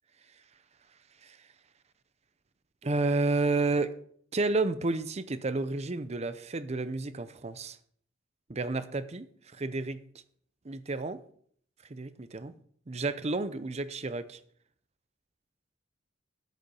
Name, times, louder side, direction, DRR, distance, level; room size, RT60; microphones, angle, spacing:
voice 1, 2.8-3.9 4.3-7.8 8.5-9.3 9.5-10.0 10.6-11.2 11.9-12.5 12.9-14.4, right 3 dB, 35° right, 0.6 m, -31 dB
8.7 x 8.2 x 5.5 m
head